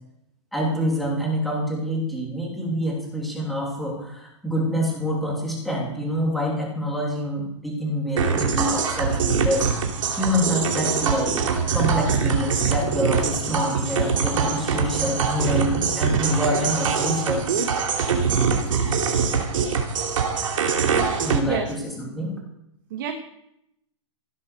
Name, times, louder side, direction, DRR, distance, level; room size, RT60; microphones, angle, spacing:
voice 1, 0.5-9.7 10.2-11.4 11.7-17.4 21.2-22.4, equal, ahead, -3 dB, 2.7 m, -26 dB
sound 1, 8.2-21.4, right 5 dB, 85° right, 2.6 m, -23 dB
voice 2, 21.1-21.7 22.9-23.1, right 9 dB, 40° right, 6 dB, 1.3 m, -30 dB
16.0 x 8.6 x 6.5 m, 0.80 s
hypercardioid pair, 180°, 16 cm